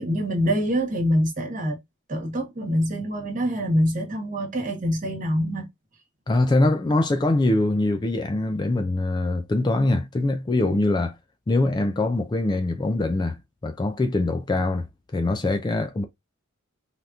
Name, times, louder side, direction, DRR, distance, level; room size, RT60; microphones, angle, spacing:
voice 1, 0.0-1.8 2.1-5.7, equal, 40° right, 1.2 m, -25 dB
voice 2, 6.3-11.2 11.5-13.4 13.6-14.9 15.1-16.0, left 2 dB, 20° left, 0.3 m, -23 dB
3.4 x 2.8 x 2.3 m
head